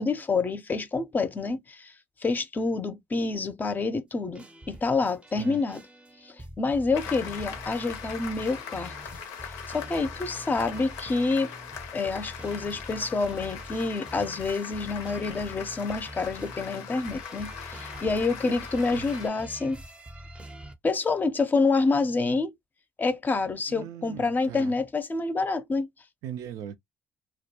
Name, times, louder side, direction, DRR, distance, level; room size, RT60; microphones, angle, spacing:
voice 1, 0.0-1.9 2.2-5.8 6.2-11.5 11.9-19.8 20.8-22.5 23.0-25.9, left 3 dB, 30° left, 0.5 m, -28 dB
sound 1, 4.3-20.7, right 1 dB, 20° right, 0.5 m, -45 dB
Applause, 6.9-19.3, left 7 dB, 85° left, 0.5 m, -41 dB
voice 2, 23.7-24.7 26.2-26.8, right 10 dB, 75° right, 0.4 m, -39 dB
2.2 x 2.2 x 2.8 m
supercardioid pair, 60°, 6 cm